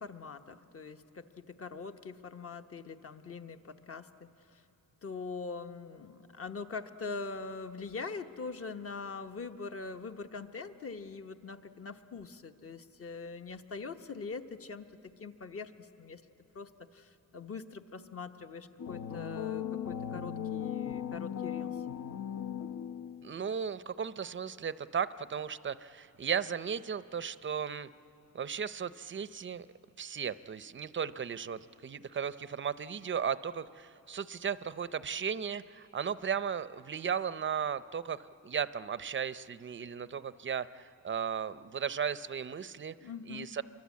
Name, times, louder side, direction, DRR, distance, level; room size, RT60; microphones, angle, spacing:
voice 1, 0.0-4.6 5.0-16.2 16.5-21.7 43.0-43.5, left 4 dB, 40° left, 8 dB, 1.1 m, -43 dB
sound 1, 18.8-23.3, left 9 dB, 55° left, 0.8 m, -38 dB
voice 2, 23.2-27.9 28.3-29.7 30.0-42.9 43.3-43.6, right 7 dB, 30° right, 15 dB, 0.6 m, -36 dB
28.5 x 23.5 x 8.4 m, 2.8 s
cardioid pair, 120°, 37 cm